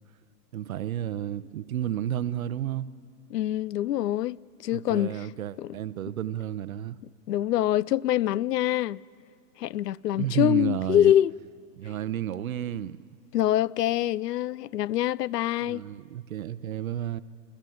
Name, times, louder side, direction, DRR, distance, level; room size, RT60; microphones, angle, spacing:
voice 1, 0.5-2.9 4.7-7.0 10.1-11.1 11.8-13.0 15.7-17.2, right 11 dB, 55° right, 0.7 m, -31 dB
voice 2, 3.3-5.3 5.6-5.8 7.3-9.0 9.6-11.3 13.3-15.8, left 12 dB, 70° left, 0.6 m, -25 dB
26.5 x 14.5 x 9.3 m
hypercardioid pair, 165°, 50 cm